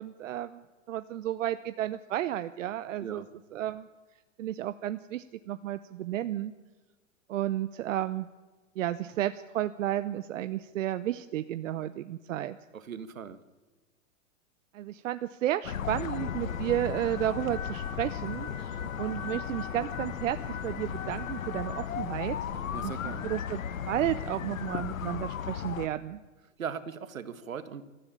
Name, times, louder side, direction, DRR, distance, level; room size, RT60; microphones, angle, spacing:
voice 1, 0.0-3.2 3.5-3.9 4.4-6.5 7.3-8.3 8.8-12.6 14.7-22.4 22.8-26.2, right 12 dB, 70° right, 13 dB, 0.9 m, -32 dB
voice 2, 12.7-13.4 22.7-23.3 26.6-27.8, right 7 dB, 85° right, 13 dB, 1.7 m, -39 dB
sound 1, 15.6-25.9, left 8 dB, 80° left, 1.3 m, -35 dB
22.0 x 13.5 x 8.5 m, 1.3 s
hypercardioid pair, 110°, 39 cm